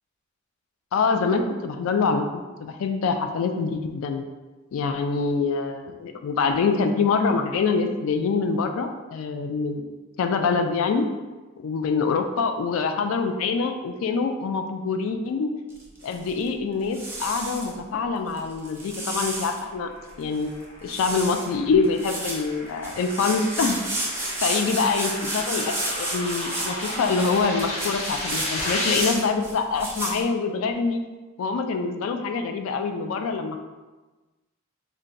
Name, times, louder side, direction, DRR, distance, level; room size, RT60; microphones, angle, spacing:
voice 1, 0.9-4.2 4.7-9.9 10.2-11.0 11.6-15.5 16.0-19.9 20.2-20.5 20.8-23.8 24.4-31.0 31.4-33.6, left 4 dB, 80° left, 6 dB, 0.3 m, -25 dB
sound 1, 15.7-16.5 16.9-17.7 18.4-19.6 20.1-20.2 20.4-20.6 20.9-21.5 21.8-30.2, right 1 dB, 10° right, 0.5 m, -32 dB
sound 2, 20.3-29.1, left 1 dB, 30° left, 0.7 m, -33 dB
2.5 x 2.2 x 3.9 m, 1.2 s
head